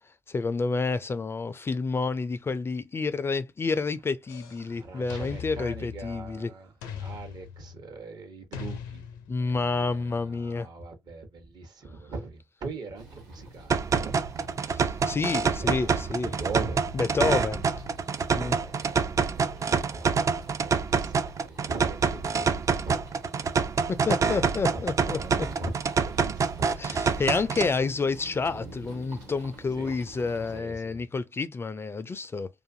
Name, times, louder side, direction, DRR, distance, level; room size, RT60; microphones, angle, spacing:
voice 1, 0.3-6.5 9.3-10.7 14.7-16.3 16.9-17.7 18.3-18.6 23.9-25.5 26.8-32.5, left 4 dB, 30° left, 0.3 m, -29 dB
sound 1, 4.3-4.7 5.1-6.4 6.8-7.9 8.5-9.6, left 8 dB, 80° left, 0.5 m, -40 dB
voice 2, 4.6-6.7 7.0-9.0 9.4-14.5 15.5-17.4 18.3-23.0 24.5-25.7 26.0-27.2 29.8-29.9 30.5-31.0, right 3 dB, 55° right, 0.9 m, -41 dB
sound 2, 13.0-30.6, right 2 dB, 90° right, 1.2 m, -46 dB
sound 3, 13.7-27.7, right 5 dB, 40° right, 0.4 m, -27 dB
2.5 x 2.4 x 2.6 m
hypercardioid pair, 45°, 8 cm